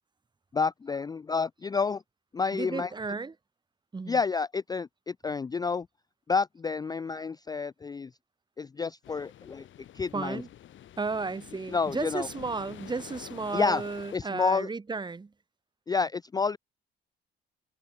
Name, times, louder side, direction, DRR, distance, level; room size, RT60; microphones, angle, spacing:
voice 1, 0.5-2.0 2.3-2.9 4.1-5.9 6.3-8.1 8.6-9.6 9.9-10.4 11.7-12.3 13.5-13.8 14.1-14.7 15.9-16.6, left 5 dB, 20° left, 0.3 m, -29 dB
voice 2, 2.5-3.3 3.9-4.2 10.1-10.5 11.0-15.3, right 4 dB, 20° right, 1.0 m, -34 dB
sound 1, 9.0-14.2, left 12 dB, 75° left, 3.7 m, -48 dB
cardioid pair, 90°, 20 cm